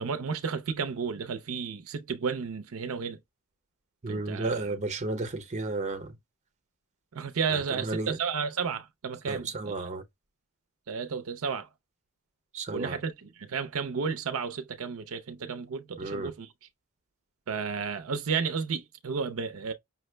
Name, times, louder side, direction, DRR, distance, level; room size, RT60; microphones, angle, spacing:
voice 1, 0.0-3.2 4.1-4.6 7.1-9.9 10.9-11.7 12.7-16.5 17.5-19.7, right 5 dB, 65° right, 0.5 m, -32 dB
voice 2, 4.0-6.2 7.5-8.2 9.3-10.0 12.5-13.0 16.0-16.3, right 2 dB, 35° right, 0.8 m, -33 dB
5.7 x 2.0 x 3.2 m
head